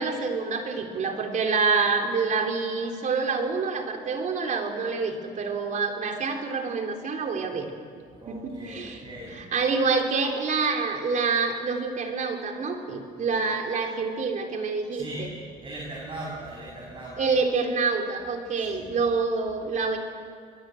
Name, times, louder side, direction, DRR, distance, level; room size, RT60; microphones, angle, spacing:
voice 1, 0.0-7.7 8.3-9.0 9.3-15.3 17.2-20.0, right 4 dB, 50° right, 3 dB, 3.7 m, -27 dB
voice 2, 8.2-9.4 14.9-15.3 15.6-17.2 18.6-18.8, right 1 dB, 30° right, -3 dB, 7.0 m, -39 dB
25.5 x 21.5 x 7.9 m, 2.1 s
cardioid pair, 110°, 17 cm